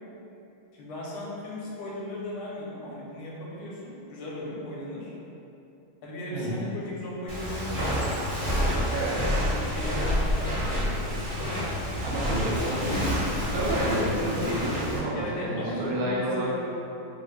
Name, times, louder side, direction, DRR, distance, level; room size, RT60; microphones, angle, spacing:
voice 1, 0.7-5.2 6.0-8.0 9.5-11.7 15.1-16.6, left 1 dB, 85° left, -4 dB, 1.6 m, -37 dB
voice 2, 6.3-6.7 8.9-9.2 12.0-13.0 13.4-16.5, right 1 dB, 70° right, -6 dB, 1.4 m, -29 dB
Walk footsteps, 7.3-15.0, equal, 15° right, 0.6 m, -28 dB
3.5 x 2.5 x 3.2 m, 2.9 s
omnidirectional pair, 2.3 m